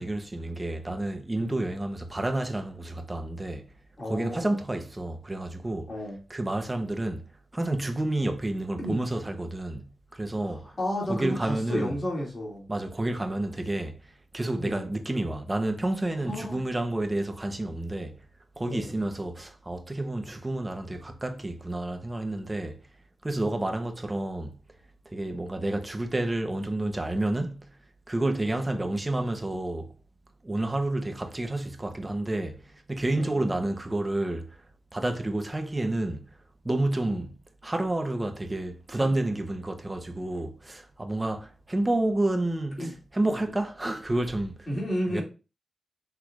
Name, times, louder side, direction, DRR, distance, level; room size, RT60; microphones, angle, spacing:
voice 1, 0.0-3.7 4.0-5.9 6.3-7.2 7.5-9.9 10.1-10.8 11.1-12.0 12.7-18.2 18.6-22.8 23.2-24.6 25.1-27.6 28.1-29.9 30.4-34.6 34.9-36.2 36.6-37.3 37.6-44.7 45.1-45.2, right 1 dB, 20° right, 0.8 m, -30 dB
voice 2, 4.0-4.6 5.9-6.2 8.8-9.0 10.5-12.7 14.6-14.9 16.2-16.6 18.7-18.9 23.4-23.6 28.7-28.9 33.1-33.4 37.0-37.2 38.9-39.1 42.8-42.9 44.7-45.2, equal, 35° left, 2.2 m, -32 dB
6.1 x 3.4 x 2.4 m
cardioid pair, 80°, 0 cm